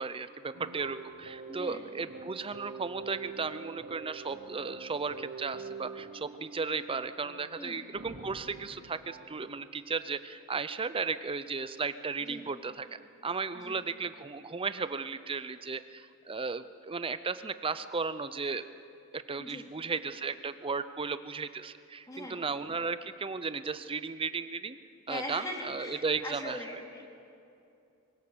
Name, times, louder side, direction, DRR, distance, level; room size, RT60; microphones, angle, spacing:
voice 1, 0.0-12.9 13.2-18.6 19.1-24.8 25.1-26.8, right 4 dB, 25° right, 12 dB, 0.6 m, -35 dB
sound 1, 0.5-9.6, right 4 dB, 55° right, 1.7 m, -46 dB
voice 2, 1.5-1.8 7.6-7.8 12.3-12.4 13.6-13.8 19.4-19.7 22.1-22.4 25.1-27.1, left 1 dB, 15° left, 0 dB, 2.7 m, -41 dB
sound 2, 7.9-9.5, right 1 dB, 85° right, 3.5 m, -50 dB
24.0 x 17.0 x 6.9 m, 2.6 s
head